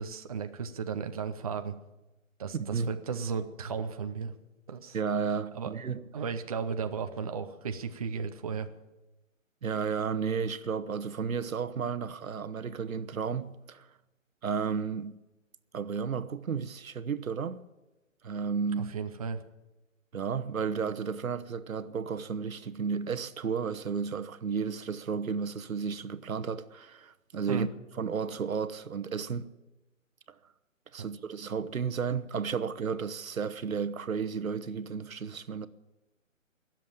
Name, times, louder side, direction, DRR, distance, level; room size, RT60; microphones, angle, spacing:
voice 1, 0.0-1.7 2.4-4.3 4.7-5.0 5.5-5.7 6.1-8.7 18.8-19.4 27.5-27.7, right 6 dB, 30° right, 0.6 m, -34 dB
voice 2, 2.5-2.9 4.9-6.0 9.6-13.9 14.4-15.2 15.7-17.6 18.2-18.9 20.1-27.7 28.0-29.5 30.9-35.7, right 6 dB, 90° right, 1.1 m, -33 dB
21.0 x 7.6 x 8.9 m
hypercardioid pair, 160°, 40 cm